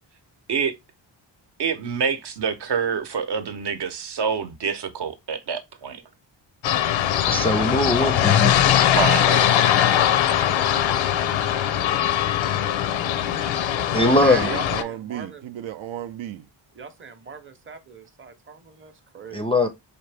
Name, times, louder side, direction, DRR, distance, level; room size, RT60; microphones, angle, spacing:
voice 1, 1.6-6.0 9.0-9.3, right 6 dB, 60° right, 0.8 m, -26 dB
sound 1, 6.6-14.8, left 11 dB, 85° left, 0.6 m, -21 dB
voice 2, 7.3-8.7 13.9-14.5 19.3-19.7, left 1 dB, 15° left, 0.3 m, -21 dB
voice 3, 9.0-9.5 14.2-15.4 16.7-19.5, right 6 dB, 25° right, 0.7 m, -37 dB
voice 4, 13.8-16.5, right 12 dB, 90° right, 0.6 m, -35 dB
4.3 x 2.8 x 3.3 m
wide cardioid pair, 115°, 46 cm